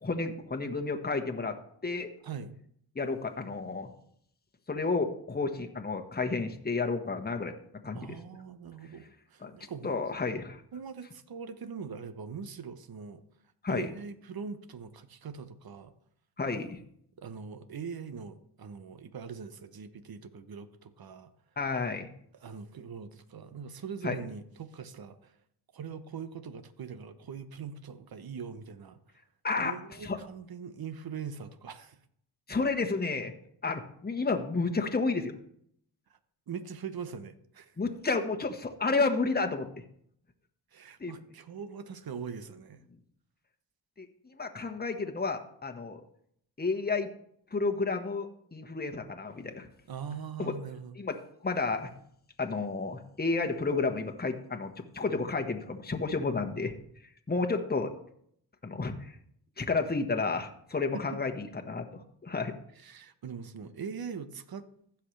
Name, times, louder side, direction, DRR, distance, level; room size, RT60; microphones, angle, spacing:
voice 1, 0.0-1.6 1.8-2.1 2.9-3.9 4.7-7.5 7.8-8.1 9.4-9.5 9.8-10.6 13.6-13.9 16.4-16.8 21.6-22.1 24.0-24.2 29.4-29.7 30.0-30.2 32.5-33.3 33.6-35.4 37.8-39.7 41.0-41.1 44.0-46.0 46.6-47.1 47.5-49.7 50.4-50.5 51.0-51.2 51.4-51.9 52.4-56.7 57.3-57.9 58.6-59.1 59.6-62.5, left 4 dB, 20° left, 1.4 m, -31 dB
voice 2, 2.2-2.5 7.9-10.0 10.7-13.2 13.7-15.9 17.2-21.3 22.3-25.3 25.7-29.0 29.6-32.0 36.5-37.7 40.7-42.8 49.9-50.9 60.9-61.2 62.8-64.7, right 6 dB, 55° right, 1.1 m, -42 dB
15.5 x 5.8 x 3.3 m
supercardioid pair, 45°, 44 cm